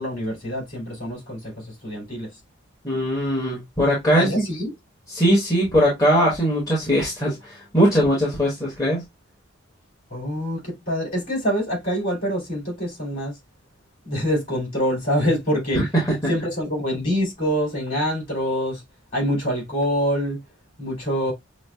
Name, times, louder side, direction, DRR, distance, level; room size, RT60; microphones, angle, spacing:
voice 1, 0.0-2.3 4.2-4.7 10.1-13.3 14.0-15.8 16.3-18.8 19.1-20.4 20.8-21.3, equal, 40° left, 2.8 m, -25 dB
voice 2, 2.8-4.4 5.1-9.0 15.7-16.1, equal, 15° left, 1.2 m, -20 dB
5.9 x 2.1 x 2.2 m
head